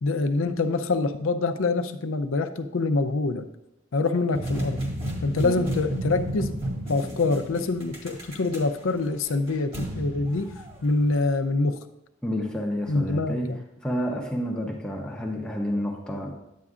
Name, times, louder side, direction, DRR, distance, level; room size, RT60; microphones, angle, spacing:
voice 1, 0.0-3.5 3.9-4.8 5.2-6.6 6.9-11.8 12.9-13.6, left 3 dB, 80° left, 8 dB, 0.6 m, -25 dB
sound 1, 4.3-11.2, right 1 dB, 30° right, 1.8 m, -33 dB
voice 2, 12.2-13.5 13.8-16.4, equal, 5° left, -1 dB, 0.8 m, -29 dB
10.5 x 8.2 x 2.5 m, 0.87 s
head